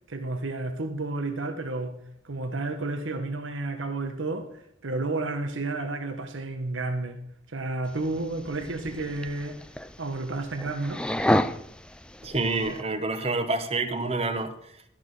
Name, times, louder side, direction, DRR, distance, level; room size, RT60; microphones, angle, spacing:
voice 1, 0.1-2.0 2.2-7.2 7.5-9.6 10.0-11.0, right 2 dB, 90° right, 1.2 m, -31 dB
sound 1, 7.9-12.8, left 1 dB, 5° left, 0.4 m, -31 dB
voice 2, 12.2-14.5, right 3 dB, 30° right, 1.0 m, -27 dB
13.0 x 6.2 x 6.7 m
head